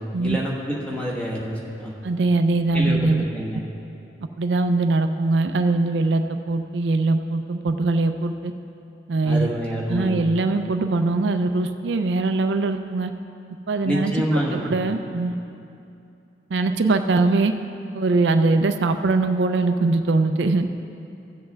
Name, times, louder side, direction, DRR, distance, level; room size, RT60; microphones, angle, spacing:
voice 1, 0.0-1.9 2.7-3.6 9.2-10.1 13.8-14.7, equal, 5° left, -4 dB, 1.3 m, -27 dB
voice 2, 2.0-3.3 4.4-8.5 9.1-9.5 9.9-13.1 13.7-14.2 14.6-15.4 16.5-17.5 17.9-20.7, right 3 dB, 75° right, 7 dB, 0.4 m, -21 dB
15.5 x 7.7 x 3.5 m, 2.7 s
head